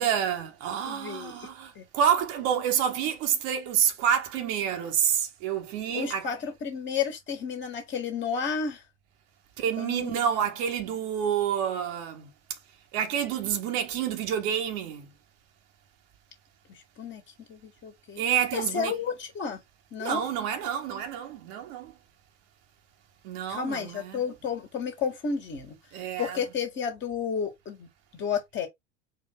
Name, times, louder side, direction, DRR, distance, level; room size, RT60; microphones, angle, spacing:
voice 1, 0.0-6.3 9.6-12.6 12.9-15.1 18.2-19.0 20.0-21.9 23.2-24.2 25.9-26.4, right 9 dB, 50° right, 1.3 m, -28 dB
voice 2, 0.9-1.5 1.8-1.9 5.9-8.8 9.8-10.2 17.0-17.2 17.5-18.2 18.5-19.6 19.9-20.3 23.5-25.8 26.2-27.9 28.1-28.7, left 6 dB, 35° left, 1.8 m, -32 dB
4.5 x 2.8 x 3.7 m
hypercardioid pair, 90°, 35 cm